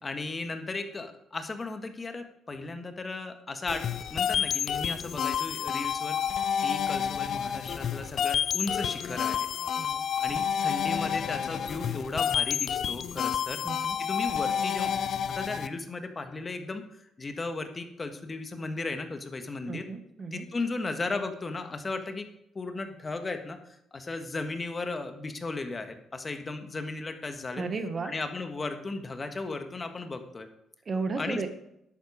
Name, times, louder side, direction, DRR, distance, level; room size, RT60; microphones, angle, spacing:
voice 1, 0.0-9.4 10.2-13.6 14.0-15.0 15.3-19.9 20.3-22.3 22.5-27.6 28.0-30.5 31.2-31.4, left 3 dB, 35° left, 7 dB, 1.6 m, -35 dB
sound 1, 3.7-15.7, left 8 dB, 65° left, 0.6 m, -29 dB
voice 2, 13.6-14.0 19.7-20.4 27.5-28.1 30.8-31.5, right 4 dB, 45° right, 8 dB, 1.4 m, -34 dB
11.5 x 8.2 x 5.0 m, 0.79 s
supercardioid pair, 55°, 0 cm